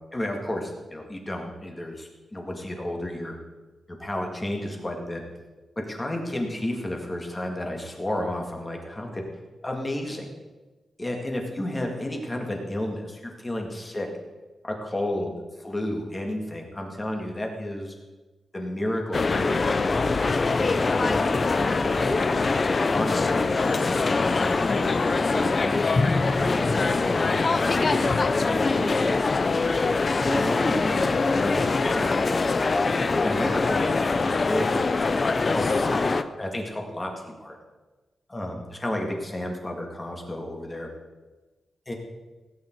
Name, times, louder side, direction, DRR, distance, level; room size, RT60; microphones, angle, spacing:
voice 1, 0.1-3.4 3.9-5.2 5.8-9.2 9.6-10.3 11.0-14.1 14.6-15.3 15.6-17.9 18.5-22.4 22.9-29.2 30.2-32.7 33.2-34.7 35.0-37.6 38.3-40.9 41.9-42.0, left 1 dB, 15° left, 2 dB, 1.9 m, -32 dB
sound 1, 19.1-36.2, left 3 dB, 30° left, 0.5 m, -23 dB
17.5 x 9.0 x 4.6 m, 1.2 s
wide cardioid pair, 170°, 0 cm